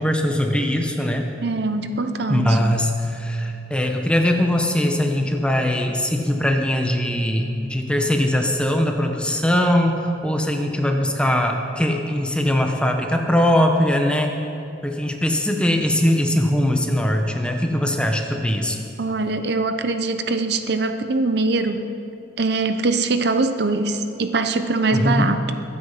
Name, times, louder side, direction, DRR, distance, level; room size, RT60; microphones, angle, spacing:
voice 1, 0.0-1.3 2.3-14.3 14.8-18.8 24.9-25.3, left 1 dB, 5° left, 3 dB, 1.0 m, -21 dB
voice 2, 1.4-2.6 19.0-21.9 22.4-25.5, right 3 dB, 55° right, 8 dB, 0.7 m, -22 dB
22.5 x 8.6 x 5.7 m, 2.7 s
head